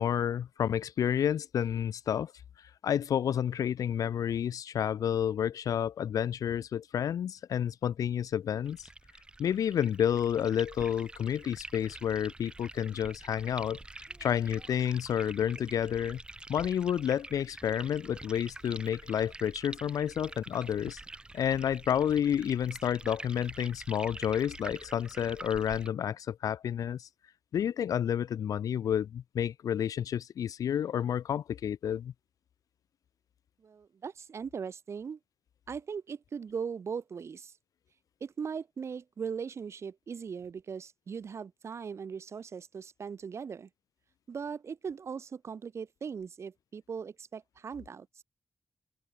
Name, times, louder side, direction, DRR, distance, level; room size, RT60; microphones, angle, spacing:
voice 1, 0.0-2.3 2.8-8.8 9.4-13.8 14.2-16.2 16.5-21.0 21.3-27.1 27.5-32.1, left 9 dB, 75° left, 0.4 m, -30 dB
sound 1, 8.6-25.9, right 2 dB, 15° right, 1.0 m, -47 dB
voice 2, 33.6-35.2 35.7-37.5 38.2-43.7 44.3-48.2, right 6 dB, 50° right, 1.5 m, -39 dB
open air
wide cardioid pair, 165°, 6 cm